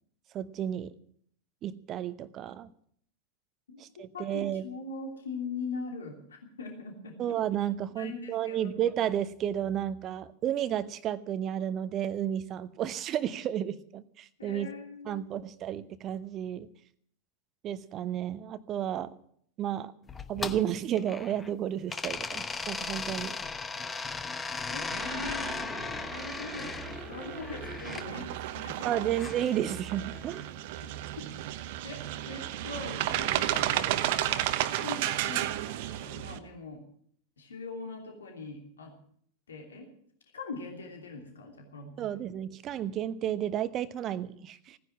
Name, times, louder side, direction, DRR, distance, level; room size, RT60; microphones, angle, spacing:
voice 1, 0.3-0.9 1.6-2.7 3.8-4.6 7.2-14.7 15.1-16.7 17.6-19.1 19.6-19.9 20.3-23.4 28.8-30.5 42.0-44.8, right 10 dB, 30° right, 14 dB, 0.9 m, -32 dB
voice 2, 3.7-7.3 7.9-8.8 14.4-15.4 24.7-26.7 27.0-29.1 31.8-36.8 37.4-38.9 39.5-39.9 40.3-42.2, left 4 dB, 70° left, 2 dB, 3.0 m, -42 dB
sound 1, 20.1-21.5 21.9-28.1 29.1-30.3, left 4 dB, 15° left, 0.9 m, -37 dB
sound 2, 24.9-36.4, right 13 dB, 50° right, 1.1 m, -33 dB
16.5 x 10.0 x 7.3 m, 0.62 s
figure-of-eight pair, 90°, 0 cm